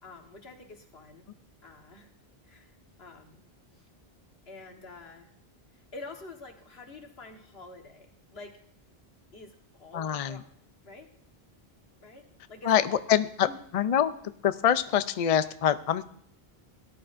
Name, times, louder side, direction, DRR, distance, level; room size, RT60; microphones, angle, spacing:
voice 1, 0.0-1.2 1.6-2.1 2.4-3.4 3.7-3.9 4.5-5.3 5.7-8.5 9.3-10.4 10.8-11.1 12.0-13.0 13.4-13.6, left 3 dB, 75° left, 3 dB, 1.7 m, -47 dB
voice 2, 9.9-10.4 12.6-13.5 13.7-14.1 14.4-16.1, left 9 dB, 55° left, 12 dB, 0.4 m, -25 dB
17.5 x 11.0 x 2.5 m, 0.65 s
omnidirectional pair, 1.0 m